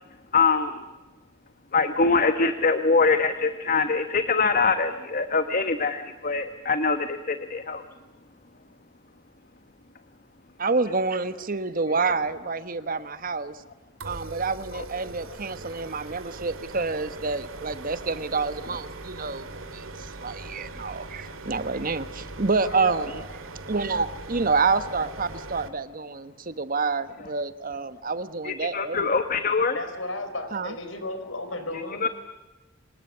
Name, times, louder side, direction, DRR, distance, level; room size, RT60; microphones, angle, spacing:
voice 1, 0.3-0.8 1.7-7.8 14.7-14.8 28.4-29.7 32.0-32.1, left 4 dB, 45° left, 9 dB, 1.2 m, -23 dB
voice 2, 10.6-13.6 14.0-23.2 23.7-29.2 30.5-30.7, right 4 dB, 45° right, 13 dB, 1.2 m, -28 dB
sound 1, 14.0-25.7, right 2 dB, 80° right, 2.2 m, -40 dB
voice 3, 22.6-23.1 29.7-32.0, left 2 dB, 65° left, 9 dB, 4.2 m, -34 dB
25.5 x 20.5 x 8.5 m, 1.1 s
head